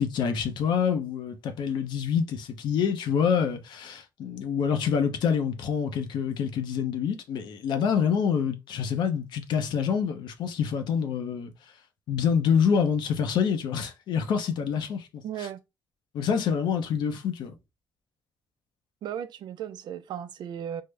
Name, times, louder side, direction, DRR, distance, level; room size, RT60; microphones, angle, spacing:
voice 1, 0.0-11.5 12.1-15.5 16.1-17.5, left 7 dB, 85° left, 0.6 m, -26 dB
voice 2, 15.2-15.6 19.0-20.8, right 9 dB, 80° right, 0.4 m, -35 dB
3.6 x 2.0 x 3.2 m
cardioid pair, 90°, 7 cm